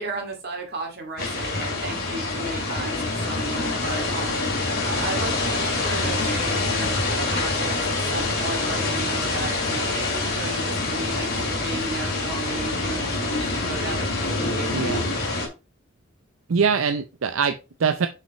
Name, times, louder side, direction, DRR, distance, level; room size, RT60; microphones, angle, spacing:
voice 1, 0.0-4.4 4.8-15.1, right 2 dB, 50° right, 2 dB, 2.2 m, -34 dB
sound 1, 1.2-15.5, left 2 dB, 50° left, 2.7 m, -26 dB
Organ, 2.3-14.4, left 2 dB, 25° left, 1.4 m, -40 dB
voice 2, 14.7-15.0 16.5-18.1, right 6 dB, 75° right, 9 dB, 0.5 m, -23 dB
5.9 x 5.6 x 4.1 m, 0.28 s
head